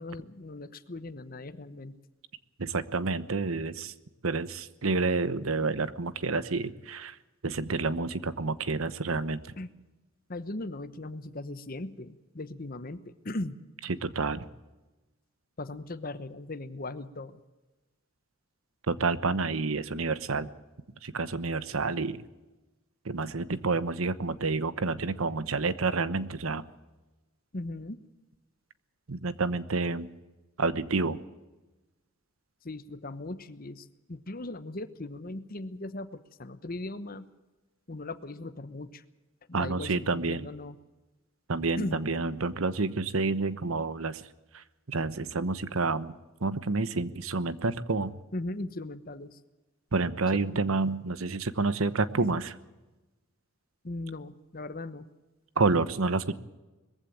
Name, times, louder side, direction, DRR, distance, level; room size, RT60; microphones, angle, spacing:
voice 1, 0.0-2.0 9.6-9.7 10.3-13.6 15.6-17.4 27.5-28.0 32.6-37.3 37.9-39.0 39.5-40.7 41.8-42.0 48.3-49.4 50.3-50.6 53.8-55.1, left 2 dB, 45° left, 13 dB, 1.0 m, -38 dB
voice 2, 2.6-3.9 4.2-7.1 7.4-9.5 13.9-14.4 18.9-20.5 21.0-22.2 23.0-26.7 29.1-30.1 30.6-31.2 39.5-40.5 41.5-44.2 44.5-46.1 46.4-48.2 49.9-52.5 55.6-56.4, right 3 dB, 90° right, 14 dB, 1.1 m, -29 dB
21.0 x 15.0 x 8.7 m, 1.1 s
head